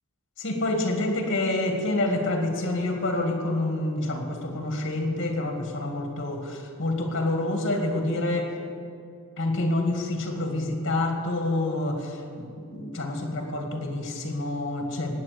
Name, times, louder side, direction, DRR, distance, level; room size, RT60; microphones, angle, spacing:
voice 1, 0.4-8.5 9.4-15.2, left 2 dB, 55° left, 2 dB, 2.3 m, -27 dB
19.0 x 8.8 x 6.9 m, 2.3 s
head